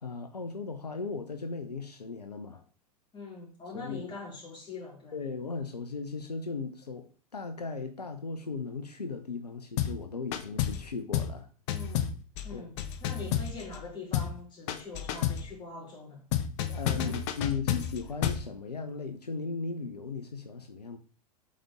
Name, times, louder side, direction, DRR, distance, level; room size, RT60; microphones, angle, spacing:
voice 1, 0.0-2.6 3.7-4.1 5.1-11.5 12.5-12.7 16.7-21.0, left 4 dB, 85° left, 0.7 m, -37 dB
voice 2, 3.1-5.3 11.7-12.2 12.4-16.2 16.9-17.5, left 3 dB, 25° left, 3.4 m, -43 dB
sound 1, 9.8-10.0 10.3-10.9 11.1-11.4 11.7-13.8 14.1-14.4 14.7-15.5 16.3-18.5, left 10 dB, 50° left, 0.8 m, -30 dB
8.6 x 4.2 x 3.7 m
figure-of-eight pair, 90°, 20 cm